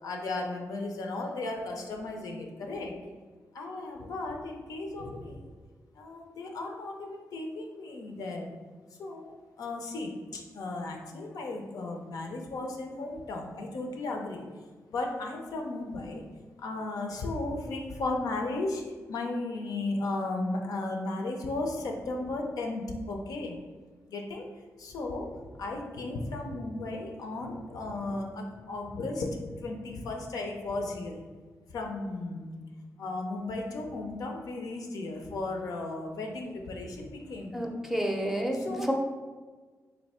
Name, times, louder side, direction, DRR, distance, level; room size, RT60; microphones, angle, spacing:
voice 1, 0.0-2.9 3.5-5.4 5.9-8.5 9.0-9.3 9.6-14.4 14.9-16.3 16.6-18.8 19.1-23.6 24.1-24.5 24.8-31.2 31.7-32.6 33.0-37.7 38.5-38.9, left 2 dB, 85° left, 2 dB, 0.5 m, -35 dB
voice 2, 37.5-38.9, equal, 5° right, 2 dB, 0.5 m, -30 dB
3.3 x 2.6 x 4.2 m, 1.4 s
cardioid pair, 95°, 6 cm